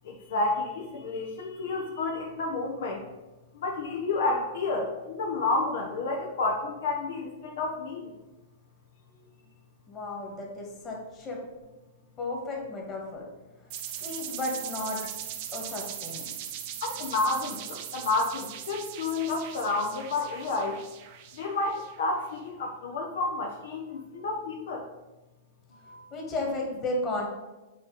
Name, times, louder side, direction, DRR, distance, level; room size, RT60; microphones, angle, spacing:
voice 1, 0.0-3.0 3.5-8.1 15.0-15.1 16.8-20.8 21.4-24.9 25.9-26.1, left 3 dB, 70° left, 1 dB, 0.9 m, -30 dB
voice 2, 9.9-11.4 12.2-13.2 13.9-15.0 15.5-16.3 26.1-27.3, left 2 dB, 30° left, -1 dB, 1.9 m, -33 dB
sound 1, 13.7-22.2, right 10 dB, 50° right, 0.7 m, -40 dB
7.2 x 3.1 x 5.0 m, 1.1 s
hypercardioid pair, 125°, 0 cm